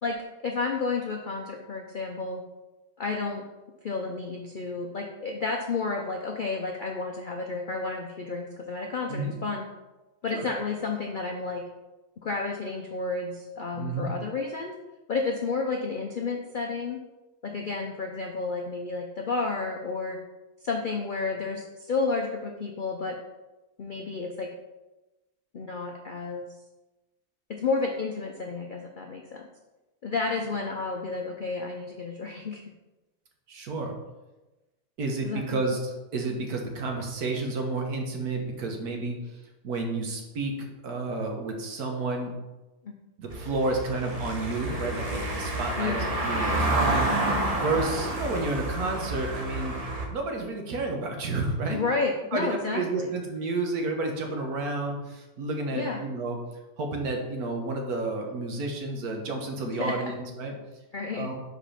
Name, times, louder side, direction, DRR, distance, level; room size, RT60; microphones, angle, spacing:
voice 1, 0.4-2.4 3.0-3.4 3.8-9.6 10.2-11.6 12.2-14.7 15.1-17.0 17.4-20.2 20.6-23.2 23.8-24.5 25.5-26.5 27.5-29.4 30.0-32.6 35.2-35.8 42.8-42.9 45.8-46.1 51.7-53.2 55.7-56.0 59.7-60.1 60.9-61.3, left 4 dB, 65° left, 1 dB, 0.5 m, -31 dB
voice 2, 13.7-14.1 33.5-33.9 35.0-35.8 36.1-39.2 39.6-40.6 40.8-42.4 43.2-49.8 50.1-51.8 52.3-56.4 56.8-60.5 61.1-61.4, right 3 dB, 80° right, 2 dB, 1.6 m, -31 dB
Car passing by / Engine, 43.3-50.1, right 1 dB, 30° right, 0.9 m, -29 dB
5.0 x 4.4 x 5.6 m, 1.1 s
omnidirectional pair, 1.6 m